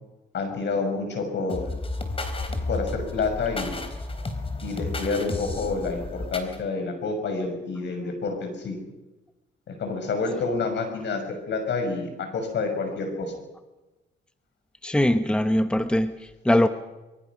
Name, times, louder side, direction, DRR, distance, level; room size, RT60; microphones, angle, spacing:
voice 1, 0.3-1.8 2.7-3.8 4.6-8.8 9.7-13.3, left 4 dB, 65° left, 6 dB, 6.6 m, -28 dB
sound 1, 1.5-6.6, left 2 dB, 30° left, 3.9 m, -32 dB
voice 2, 14.8-16.7, left 1 dB, 5° left, 9 dB, 1.2 m, -22 dB
24.5 x 22.5 x 6.2 m, 1.1 s
cardioid pair, 90°, 20 cm